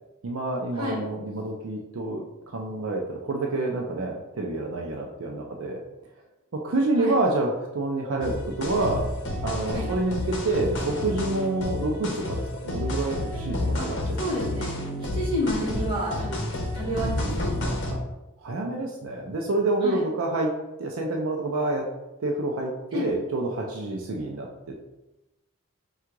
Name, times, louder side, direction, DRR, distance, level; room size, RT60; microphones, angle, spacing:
voice 1, 0.2-2.3 2.5-5.8 6.6-9.1 9.4-14.3 18.4-20.5 20.8-21.9 22.2-24.8, right 2 dB, 75° right, 1 dB, 0.5 m, -28 dB
sound 1, 8.2-17.9, left 1 dB, 55° left, 0.8 m, -30 dB
voice 2, 14.2-14.7 15.1-16.4 16.7-17.7 19.8-20.0 22.9-23.1, left 1 dB, 20° right, -8 dB, 1.4 m, -29 dB
3.6 x 2.4 x 4.5 m, 0.98 s
head